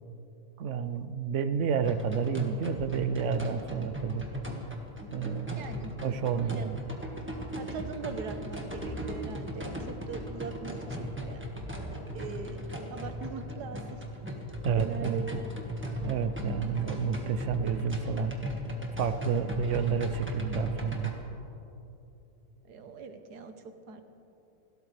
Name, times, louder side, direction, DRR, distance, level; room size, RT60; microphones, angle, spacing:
voice 1, 0.6-4.3 5.1-5.7 6.0-6.8 14.6-15.2 16.0-18.3 19.0-21.1, right 7 dB, 60° right, 11 dB, 0.9 m, -30 dB
sound 1, 1.8-21.1, equal, 10° right, 1.5 m, -37 dB
voice 2, 5.6-5.9 6.3-6.7 7.5-11.4 12.1-12.6 12.9-14.0 14.8-15.4 22.6-24.0, right 5 dB, 85° right, 7 dB, 1.6 m, -41 dB
29.5 x 13.0 x 3.3 m, 3.0 s
omnidirectional pair, 1.7 m